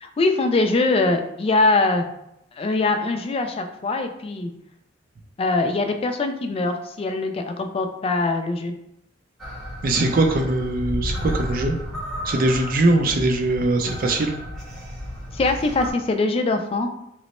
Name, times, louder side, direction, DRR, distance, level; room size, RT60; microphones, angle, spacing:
voice 1, 0.0-2.1 2.6-4.5 5.4-8.7 15.3-16.9, left 3 dB, 30° left, 6 dB, 0.3 m, -22 dB
sound 1, 9.4-15.9, equal, 5° left, 0.7 m, -32 dB
voice 2, 9.8-11.8 12.2-14.4, right 2 dB, 50° right, 4 dB, 0.5 m, -21 dB
3.0 x 2.1 x 4.1 m, 0.81 s
head